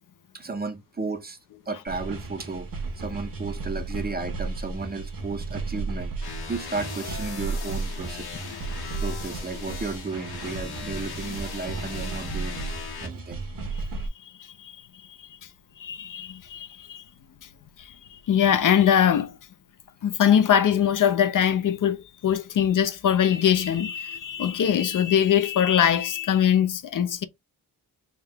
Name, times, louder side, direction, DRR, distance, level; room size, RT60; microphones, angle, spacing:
voice 1, 0.3-1.4 1.7-2.7 3.0-8.3 9.0-12.6 13.0-13.4, right 4 dB, 25° right, 0.5 m, -34 dB
sound 1, 1.9-14.1, right 3 dB, 60° right, 1.1 m, -34 dB
sound 2, 6.2-13.1, left 5 dB, 75° left, 1.3 m, -38 dB
voice 2, 15.8-17.0 18.3-19.3 20.0-22.0 22.2-27.2, left 9 dB, 55° left, 0.4 m, -22 dB
3.5 x 2.8 x 3.3 m
wide cardioid pair, 170°, 38 cm